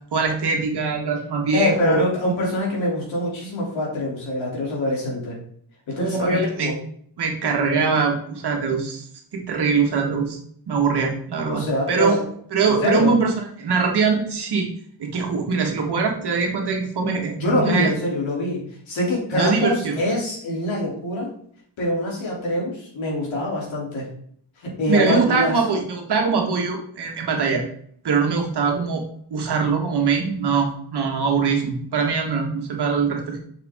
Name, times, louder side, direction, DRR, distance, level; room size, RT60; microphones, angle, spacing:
voice 1, 0.1-2.0 6.0-6.7 7.2-9.0 9.3-10.4 10.7-12.2 12.5-14.7 15.0-17.9 19.3-20.0 24.9-27.6 28.0-29.0 29.3-33.4, right 5 dB, 55° right, 1 dB, 1.7 m, -22 dB
voice 2, 1.5-5.4 5.9-6.8 11.5-12.2 12.7-13.1 17.4-21.3 21.8-24.1 24.6-25.6, left 1 dB, 75° left, -3 dB, 3.5 m, -24 dB
6.8 x 6.7 x 3.7 m, 0.63 s
wide cardioid pair, 160°, 47 cm